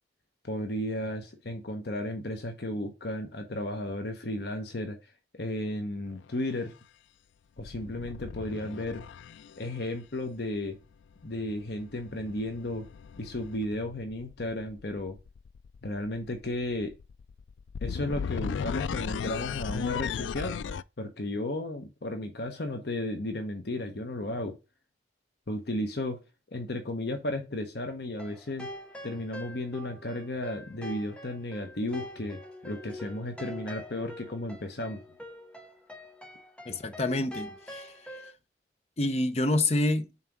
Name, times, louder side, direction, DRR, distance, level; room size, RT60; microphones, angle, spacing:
voice 1, 0.4-6.7 7.6-9.0 9.6-10.8 11.2-12.9 13.2-15.2 15.8-16.9 17.8-20.6 21.0-24.5 25.5-26.2 26.5-28.7 29.0-35.0, left 1 dB, 60° left, 1.0 m, -34 dB
sound 1, 6.1-6.3 7.6-9.7 11.5-20.8, left 6 dB, 85° left, 0.3 m, -37 dB
sound 2, 28.2-38.3, equal, 5° left, 0.9 m, -44 dB
voice 2, 36.7-37.9 39.0-40.1, left 2 dB, 35° left, 0.7 m, -27 dB
5.7 x 4.1 x 6.0 m
head